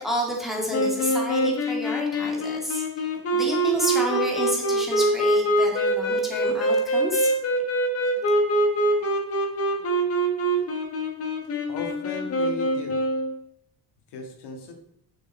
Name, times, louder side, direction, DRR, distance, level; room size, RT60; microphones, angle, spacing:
voice 1, 0.0-3.1 3.3-7.4, equal, ahead, -2 dB, 2.0 m, -30 dB
sound 1, 0.7-13.3, right 1 dB, 35° left, 1.5 m, -24 dB
voice 2, 11.7-13.0 14.1-14.7, left 3 dB, 90° left, 3 dB, 2.1 m, -36 dB
9.7 x 6.6 x 4.3 m, 0.72 s
cardioid pair, 175°, 39 cm